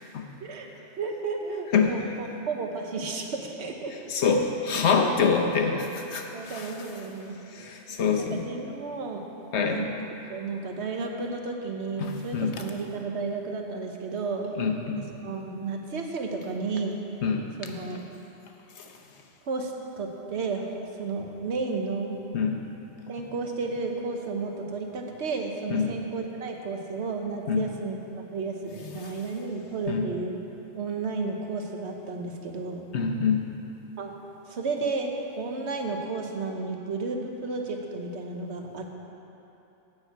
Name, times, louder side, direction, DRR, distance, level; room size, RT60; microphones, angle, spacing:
voice 1, 1.0-3.9 4.2-4.3 5.2-5.8 6.3-7.7 8.0-9.3 9.5-9.9 10.3-17.0 17.6-18.1 19.4-20.6 21.0-22.2 23.1-30.4 30.7-32.9 34.0-34.1 34.5-38.9, right 4 dB, 60° right, 2 dB, 1.2 m, -33 dB
voice 2, 1.7-2.1 4.1-6.7 7.5-8.4 9.5-9.8 12.0-12.6 14.6-15.0 17.2-17.5 18.8-18.9 22.3-22.6 25.7-25.9 27.5-27.7 29.0-29.1 29.9-30.1 32.9-33.5, left 5 dB, 60° left, 3 dB, 1.1 m, -26 dB
9.0 x 6.2 x 7.9 m, 2.9 s
omnidirectional pair, 1.3 m